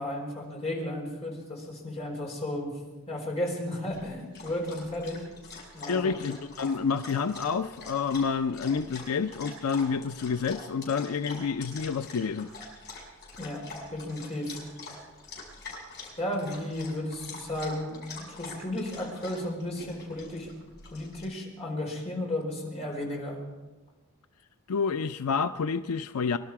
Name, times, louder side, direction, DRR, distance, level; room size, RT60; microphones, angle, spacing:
voice 1, 0.0-2.7 3.1-5.3 5.7-6.2 13.4-14.5 16.2-20.5 20.9-23.4, left 1 dB, 30° left, -1 dB, 4.4 m, -34 dB
Dog, 3.9-21.2, left 3 dB, 50° left, 6.4 m, -45 dB
voice 2, 5.9-12.5 24.7-26.4, left 5 dB, 85° left, 10 dB, 0.5 m, -29 dB
24.0 x 12.0 x 4.8 m, 1.2 s
head